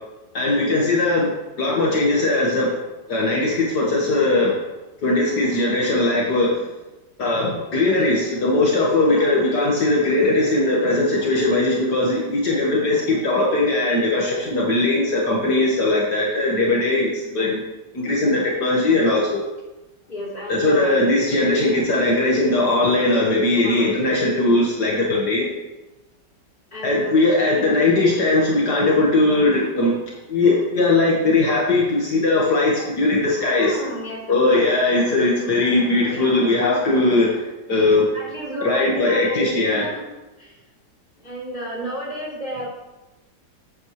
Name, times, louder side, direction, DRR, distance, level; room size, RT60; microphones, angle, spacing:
voice 1, 0.3-1.3 1.6-2.8 3.1-4.6 5.0-6.6 7.2-17.6 17.9-19.4 20.5-25.5 26.8-29.9 30.3-33.8 34.3-38.1 38.6-39.9, left 2 dB, 65° left, -4 dB, 2.2 m, -19 dB
voice 2, 20.1-20.9 23.6-23.9 26.7-27.3 33.6-34.7 36.1-36.5 37.7-40.0 40.4-40.5 41.2-42.7, right 1 dB, 25° left, -6 dB, 3.8 m, -32 dB
15.0 x 8.7 x 3.2 m, 1.1 s
omnidirectional pair, 1.9 m